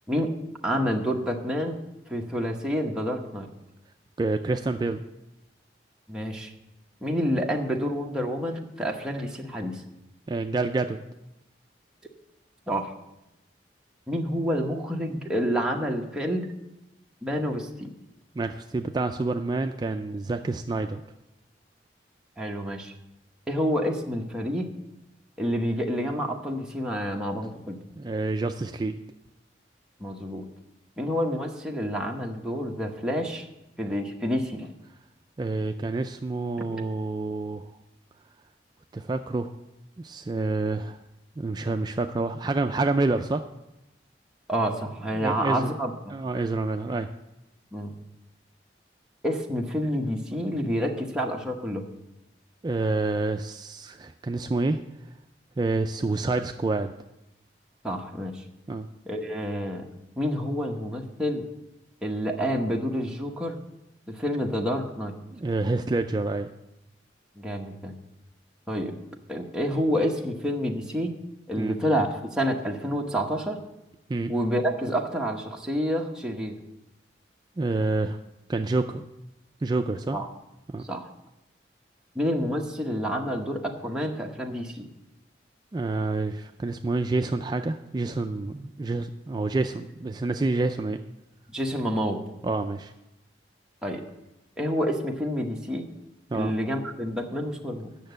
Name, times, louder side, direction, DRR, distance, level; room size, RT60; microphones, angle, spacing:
voice 1, 0.6-1.8 2.1-3.5 6.1-6.5 7.0-9.8 12.7-12.9 14.1-16.5 17.2-17.9 22.4-22.9 23.5-24.7 25.4-27.8 30.0-30.4 31.0-33.5 33.8-34.7 36.7-36.8 44.5-46.1 47.7-47.9 49.2-51.8 57.8-58.4 59.1-59.8 60.2-61.5 62.0-63.6 64.1-65.1 67.4-67.9 68.7-69.0 69.3-71.1 71.5-73.6 74.3-76.6 80.1-80.3 80.9-81.1 82.1-84.9 91.5-92.2 93.8-94.0 94.6-95.9 96.3-97.9, equal, 5° right, -1 dB, 0.9 m, -28 dB
voice 2, 4.2-5.0 10.3-11.0 18.4-21.0 27.9-29.0 35.4-37.7 38.9-39.5 40.0-41.0 41.4-43.4 45.1-45.7 46.1-47.1 52.6-54.8 55.6-56.9 58.7-58.9 65.3-66.5 71.6-71.8 74.1-74.3 77.6-78.2 78.5-79.0 79.6-80.2 80.7-80.9 85.7-91.0 92.4-92.9 96.3-96.5 98.0-98.1, right 3 dB, 25° right, 6 dB, 0.3 m, -28 dB
8.8 x 6.5 x 7.9 m, 0.90 s
head